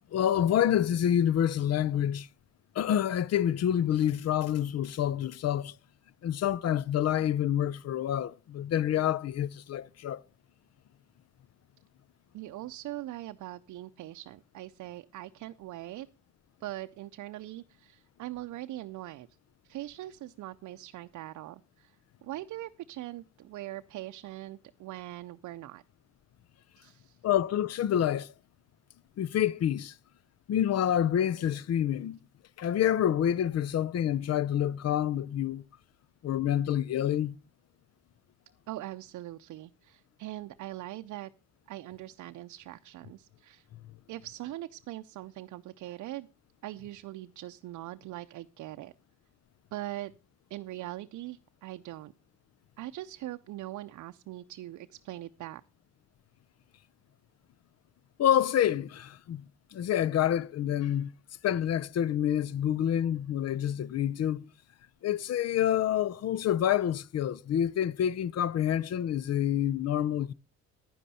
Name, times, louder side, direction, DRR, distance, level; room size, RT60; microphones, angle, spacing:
voice 1, 0.1-2.3 2.7-5.8 6.2-10.2 27.2-28.3 29.2-29.9 30.5-32.2 32.6-35.6 36.2-37.4 58.2-59.4 59.7-61.1 61.4-64.4 65.0-70.3, left 10 dB, 55° left, 0.6 m, -27 dB
voice 2, 12.3-16.1 16.6-19.3 19.6-21.9 22.2-25.8 26.8-27.2 38.7-41.3 41.7-43.7 44.1-46.3 46.6-48.9 49.7-50.1 50.5-52.1 52.8-55.6, right 15 dB, 75° right, 0.6 m, -41 dB
11.0 x 10.0 x 4.2 m
cardioid pair, 90°, 30 cm